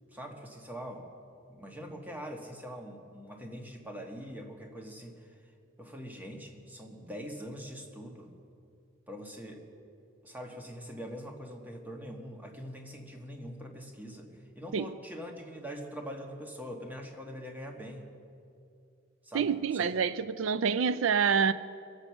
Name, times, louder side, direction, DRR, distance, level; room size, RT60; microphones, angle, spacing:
voice 1, 0.1-1.1 1.5-5.3 5.8-8.3 9.1-9.7 10.2-18.1 19.2-19.9, equal, 10° right, 2 dB, 1.5 m, -43 dB
voice 2, 19.3-21.5, right 6 dB, 90° right, 14 dB, 0.4 m, -27 dB
23.5 x 8.0 x 5.9 m, 2.5 s
head